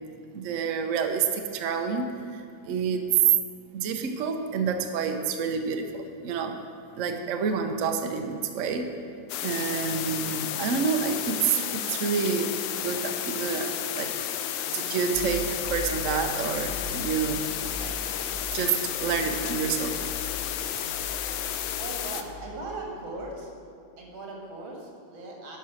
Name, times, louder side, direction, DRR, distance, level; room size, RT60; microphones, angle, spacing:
voice 1, 0.3-3.0 3.7-6.6 7.0-8.9 9.4-14.2 14.7-18.0 18.5-20.0, right 6 dB, 60° right, 5 dB, 0.8 m, -29 dB
sound 1, 9.3-22.2, left 10 dB, 80° left, 1.3 m, -32 dB
sound 2, 15.1-23.2, left 2 dB, 35° left, 1.7 m, -41 dB
voice 2, 21.8-23.5 24.0-25.6, right 2 dB, 85° right, -1 dB, 2.6 m, -38 dB
10.5 x 5.7 x 6.3 m, 2.5 s
omnidirectional pair, 2.2 m